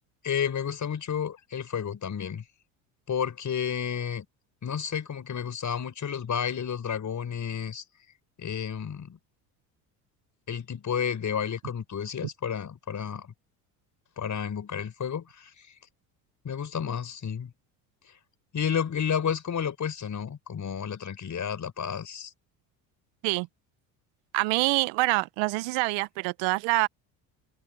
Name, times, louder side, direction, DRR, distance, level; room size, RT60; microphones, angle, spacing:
voice 1, 0.2-2.4 3.1-4.2 4.6-7.8 8.4-9.2 10.5-13.3 14.2-15.5 16.4-17.5 18.5-22.3, left 7 dB, 40° left, 5.9 m, -31 dB
voice 2, 24.3-26.9, right 23 dB, 70° right, 1.4 m, -25 dB
supercardioid pair, 80°, 46 cm